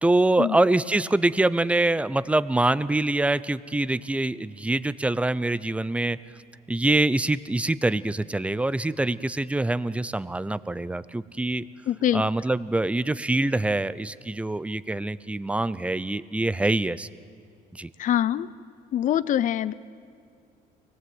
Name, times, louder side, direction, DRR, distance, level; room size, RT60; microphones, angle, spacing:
voice 1, 0.0-6.2 6.7-11.6 12.1-17.1 17.7-17.9, right 2 dB, 5° right, 16 dB, 0.5 m, -24 dB
voice 2, 11.9-12.2 18.0-18.5 18.9-19.7, left 11 dB, 50° left, 17 dB, 0.5 m, -24 dB
24.5 x 18.5 x 7.9 m, 2.3 s
cardioid pair, 110°, 17 cm